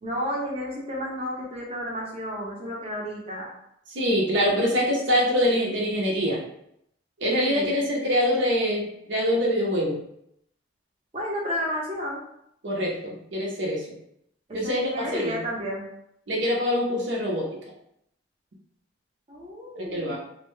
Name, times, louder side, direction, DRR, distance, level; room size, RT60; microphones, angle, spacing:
voice 1, 0.0-3.5 7.5-7.7 11.1-12.2 14.5-15.9 19.3-20.2, equal, 30° right, -3 dB, 0.7 m, -32 dB
voice 2, 3.9-6.4 7.2-10.0 12.6-13.9 14.5-15.3 16.3-17.5 19.8-20.2, equal, 70° right, -3 dB, 0.7 m, -24 dB
2.7 x 2.1 x 3.1 m, 0.75 s
head